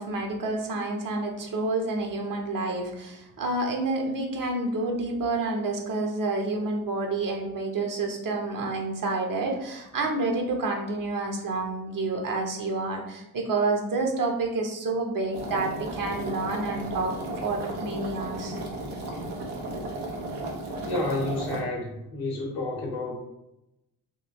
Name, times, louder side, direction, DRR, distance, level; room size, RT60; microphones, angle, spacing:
voice 1, 0.0-17.1 17.4-18.6, right 3 dB, 50° right, 2 dB, 1.0 m, -29 dB
sound 1, 15.3-21.6, right 2 dB, 80° right, 0.8 m, -34 dB
voice 2, 20.8-23.2, left 2 dB, 60° left, 0 dB, 1.4 m, -30 dB
3.7 x 2.7 x 3.0 m, 0.89 s
hypercardioid pair, 45°, 40 cm